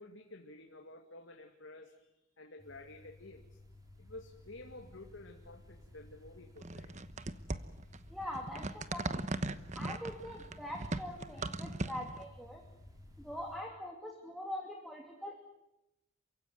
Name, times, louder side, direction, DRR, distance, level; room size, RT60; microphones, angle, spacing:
voice 1, 0.0-2.1 2.4-3.4 4.0-6.9, left 2 dB, 85° left, 2 dB, 2.5 m, -51 dB
sound 1, 2.6-13.6, left 1 dB, 20° right, 4.1 m, -56 dB
sound 2, 6.6-12.3, right 2 dB, 40° right, 1.1 m, -39 dB
voice 2, 8.1-9.3 9.7-12.6 13.2-15.4, left 1 dB, ahead, 0 dB, 2.9 m, -43 dB
28.5 x 16.0 x 9.7 m, 0.90 s
head